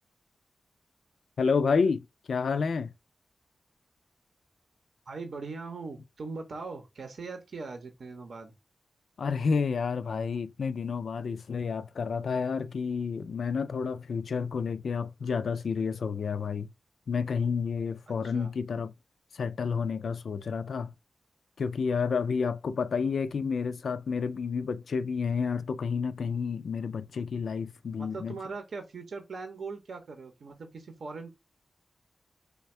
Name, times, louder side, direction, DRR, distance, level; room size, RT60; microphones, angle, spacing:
voice 1, 1.4-2.9 9.2-16.7 17.1-18.9 19.3-20.9 21.6-28.4, left 5 dB, 80° left, 0.3 m, -30 dB
voice 2, 5.1-8.5 18.1-18.5 28.0-31.3, right 4 dB, 75° right, 0.7 m, -40 dB
3.4 x 2.2 x 4.2 m
cardioid pair, 70°, 0 cm